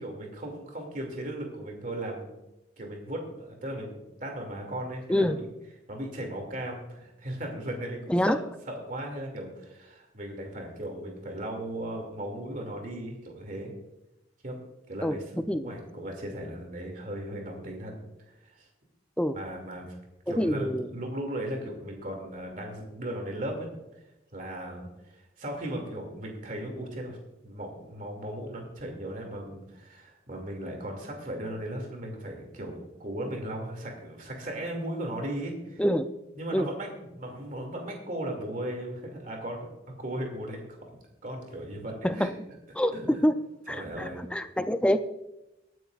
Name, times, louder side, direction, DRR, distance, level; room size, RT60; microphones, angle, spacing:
voice 1, 0.0-2.3 2.8-5.4 5.9-13.7 14.4-14.6 14.9-15.2 15.5-17.9 18.4-18.7 19.3-20.0 20.3-23.7 24.3-27.2 27.4-35.8 36.4-39.7 40.0-40.8 41.2-42.3 42.9-43.2 43.7-44.2, right 1 dB, 45° right, 2 dB, 2.5 m, -37 dB
voice 2, 20.4-20.9 35.8-36.1 36.5-36.7 42.0-42.3 42.8-43.3 43.7-45.0, equal, 5° left, 9 dB, 0.5 m, -26 dB
23.0 x 9.2 x 2.5 m, 0.94 s
head